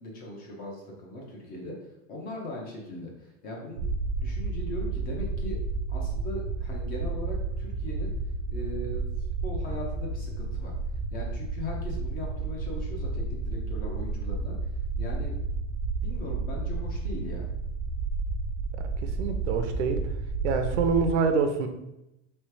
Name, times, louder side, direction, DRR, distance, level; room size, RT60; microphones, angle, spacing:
voice 1, 0.0-1.7 2.1-3.9 4.2-5.6 5.9-8.1 8.5-9.0 9.4-10.7 11.1-14.5 15.0-15.3 16.0-17.5, left 1 dB, 25° left, -1 dB, 0.9 m, -39 dB
sound 1, 3.8-21.1, right 3 dB, 35° right, 0.4 m, -31 dB
voice 2, 18.8-20.0 20.4-21.7, right 5 dB, 70° right, 7 dB, 0.7 m, -26 dB
3.3 x 3.2 x 4.7 m, 0.89 s
supercardioid pair, 165°, 36 cm